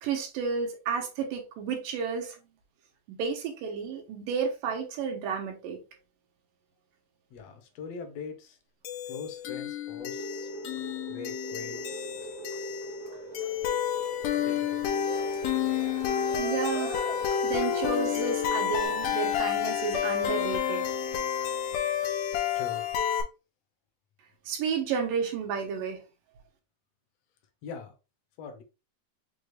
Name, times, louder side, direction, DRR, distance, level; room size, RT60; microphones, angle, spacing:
voice 1, 0.0-2.4 3.2-5.8 16.4-17.1 17.4-20.9 24.5-26.0, right 6 dB, 85° right, 2.8 m, -31 dB
voice 2, 7.3-8.6 9.0-10.5 11.1-12.1 14.4-15.1 22.5-22.9 27.6-27.9 28.4-28.6, left 5 dB, 70° left, 1.6 m, -42 dB
sound 1, 8.8-23.2, left 9 dB, 85° left, 2.2 m, -30 dB
sound 2, 10.0-18.9, right 7 dB, 65° right, 1.7 m, -44 dB
Cheering, 11.7-18.6, equal, 30° left, 0.3 m, -46 dB
6.4 x 2.4 x 3.2 m
omnidirectional pair, 3.8 m